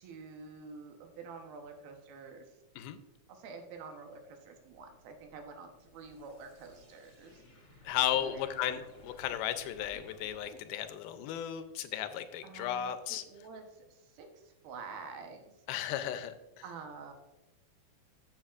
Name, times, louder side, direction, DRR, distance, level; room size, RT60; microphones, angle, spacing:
voice 1, 0.0-2.6 3.3-8.8 12.4-15.6 16.6-17.1, right 4 dB, 80° right, 4 dB, 2.9 m, -48 dB
sound 1, 4.6-11.7, left 1 dB, 30° left, 2.4 m, -58 dB
voice 2, 7.8-13.2 15.7-16.3, left 11 dB, 85° left, 10 dB, 2.5 m, -35 dB
13.0 x 7.4 x 2.4 m, 1.0 s
omnidirectional pair, 4.2 m